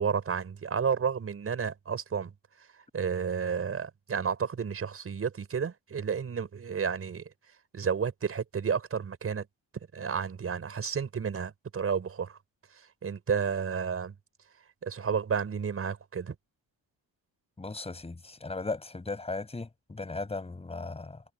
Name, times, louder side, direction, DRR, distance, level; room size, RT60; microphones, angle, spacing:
voice 1, 0.0-2.3 2.9-7.2 7.7-9.5 9.9-12.4 12.8-14.1 14.8-16.3, right 6 dB, 35° right, 6.2 m, -31 dB
voice 2, 17.6-21.2, left 3 dB, 15° left, 6.2 m, -37 dB
cardioid pair, 170°, 39 cm